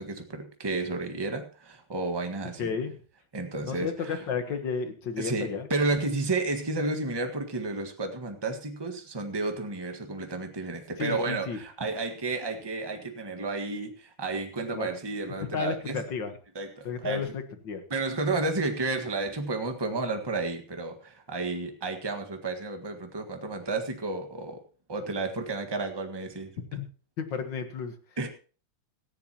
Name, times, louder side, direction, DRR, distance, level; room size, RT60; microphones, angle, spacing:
voice 1, 0.0-2.7 3.3-4.2 5.2-16.0 16.5-17.3 17.9-24.6 24.9-26.5 28.2-28.3, right 3 dB, 15° right, 5 dB, 1.4 m, -32 dB
voice 2, 2.6-2.9 3.6-5.7 11.0-11.6 14.7-14.9 15.5-16.3 16.8-17.8 26.7-26.9 27.2-27.9, left 5 dB, 65° left, 8 dB, 2.1 m, -32 dB
17.5 x 14.5 x 3.0 m, 0.37 s
omnidirectional pair, 2.2 m